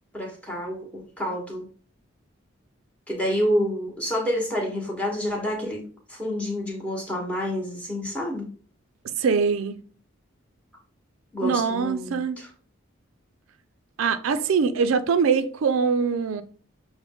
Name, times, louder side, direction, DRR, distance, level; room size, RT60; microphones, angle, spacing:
voice 1, 0.1-1.7 3.1-8.5 11.3-12.5, equal, 5° left, 0.9 m, -28 dB
voice 2, 9.2-9.8 11.4-12.4 14.0-16.4, right 5 dB, 85° right, 0.4 m, -23 dB
6.0 x 2.1 x 3.5 m
head